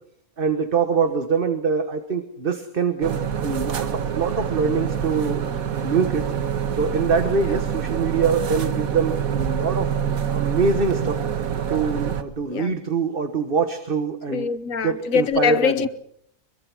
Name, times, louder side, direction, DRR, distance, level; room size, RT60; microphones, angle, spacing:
voice 1, 0.4-6.3 6.7-9.9 10.3-11.2 11.7-14.5 14.8-15.7, right 5 dB, 40° right, 1.5 m, -24 dB
sound 1, 3.0-12.2, right 8 dB, 75° right, 1.7 m, -26 dB
voice 2, 14.3-15.9, left 7 dB, 65° left, 1.4 m, -23 dB
24.0 x 22.5 x 6.1 m
omnidirectional pair, 1.5 m